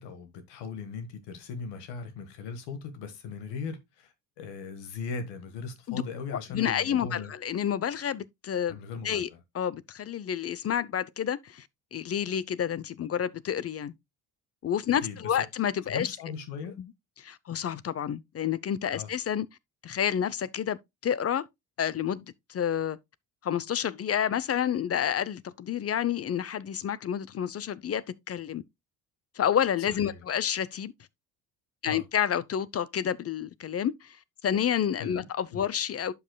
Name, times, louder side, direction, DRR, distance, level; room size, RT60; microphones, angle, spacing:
voice 1, 0.0-7.3 8.7-9.4 15.0-15.3 15.9-16.8 18.9-19.1 29.9-30.2 31.9-32.0 35.0-35.6, left 5 dB, 80° left, 1.6 m, -39 dB
voice 2, 6.5-8.8 9.0-9.3 9.5-13.9 14.6-16.1 16.6-16.9 17.2-19.5 19.8-20.8 21.0-21.4 21.8-23.0 23.4-28.6 29.4-30.9 31.8-34.2 34.4-36.1, left 9 dB, 35° left, 0.6 m, -29 dB
11.5 x 5.5 x 2.2 m
supercardioid pair, 75°, 41 cm